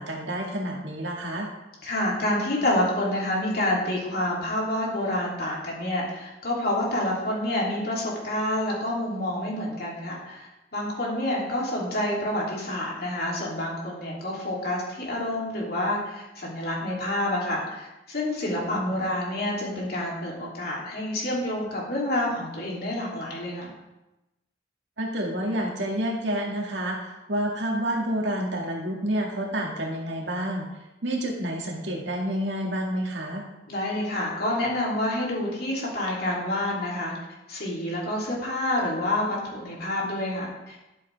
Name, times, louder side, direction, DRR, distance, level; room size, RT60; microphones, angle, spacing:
voice 1, 0.0-1.5 18.7-19.0 25.0-30.7 31.0-33.4, right 1 dB, 85° right, -1 dB, 2.1 m, -29 dB
voice 2, 1.8-23.7 33.7-37.1 37.5-40.8, left 1 dB, 60° left, -4 dB, 3.1 m, -28 dB
12.5 x 7.6 x 3.5 m, 0.98 s
head